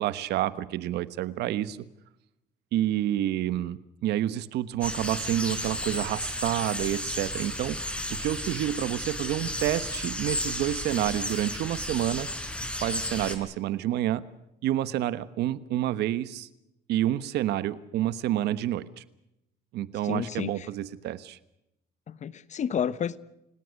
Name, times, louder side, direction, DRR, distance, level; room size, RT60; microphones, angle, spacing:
voice 1, 0.0-1.8 2.7-12.3 12.8-14.2 14.6-16.5 16.9-19.0 19.7-21.4, right 13 dB, 80° right, 15 dB, 1.3 m, -29 dB
sound 1, 4.8-13.4, left 1 dB, 5° left, 4.2 m, -33 dB
voice 2, 20.0-20.7 22.1-23.2, left 8 dB, 45° left, 16 dB, 1.2 m, -31 dB
29.5 x 18.0 x 6.6 m, 0.84 s
cardioid pair, 110°, 17 cm